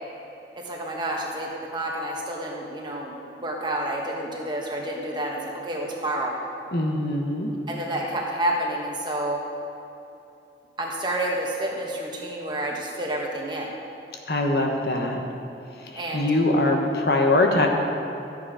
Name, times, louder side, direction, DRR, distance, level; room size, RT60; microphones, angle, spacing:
voice 1, 0.5-6.3 7.7-9.4 10.8-13.7 16.0-16.3, right 1 dB, 25° right, -1 dB, 1.4 m, -29 dB
voice 2, 6.7-7.5 14.3-15.2 15.8-17.7, left 2 dB, 65° left, 1 dB, 1.2 m, -22 dB
13.0 x 8.1 x 5.0 m, 2.9 s
head